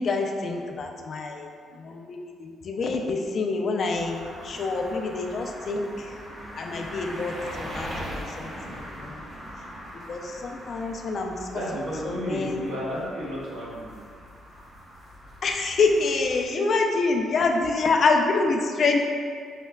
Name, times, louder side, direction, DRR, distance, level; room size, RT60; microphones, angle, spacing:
voice 1, 0.0-1.5 1.8-6.1 6.6-9.2 10.1-12.6 15.4-19.0, left 3 dB, 55° left, 2 dB, 0.3 m, -26 dB
sound 1, 3.9-16.4, equal, 35° right, 1.0 m, -41 dB
voice 2, 11.5-13.8, equal, 90° right, -7 dB, 1.0 m, -32 dB
5.6 x 2.2 x 2.2 m, 2.1 s
cardioid pair, 90°, 0 cm